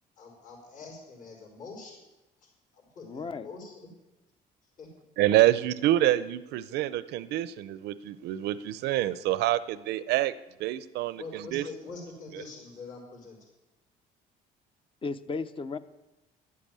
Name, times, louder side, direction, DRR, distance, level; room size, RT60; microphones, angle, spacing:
voice 1, 0.2-2.0 2.7-3.7 4.8-4.9 11.1-13.5, left 3 dB, 50° left, -2 dB, 4.8 m, -44 dB
voice 2, 3.0-3.5 15.0-15.8, left 4 dB, 30° left, 12 dB, 0.8 m, -34 dB
voice 3, 5.2-10.3 10.6-11.7, right 14 dB, 80° right, 15 dB, 0.6 m, -26 dB
11.0 x 8.4 x 8.8 m, 1.0 s
cardioid pair, 110°, 17 cm